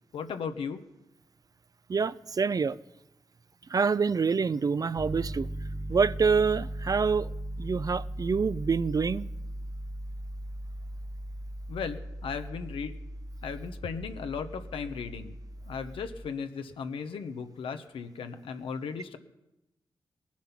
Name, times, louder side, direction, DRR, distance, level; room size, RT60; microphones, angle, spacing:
voice 1, 0.1-0.8 11.7-12.9 13.4-15.3 15.7-19.2, left 6 dB, 90° left, 0.9 m, -36 dB
voice 2, 1.9-2.8 3.7-5.5 5.9-7.3 7.6-9.3, right 5 dB, 45° right, 0.4 m, -26 dB
Piano, 5.0-16.3, right 1 dB, 20° right, 0.9 m, -38 dB
19.5 x 7.3 x 5.8 m
cardioid pair, 50°, 9 cm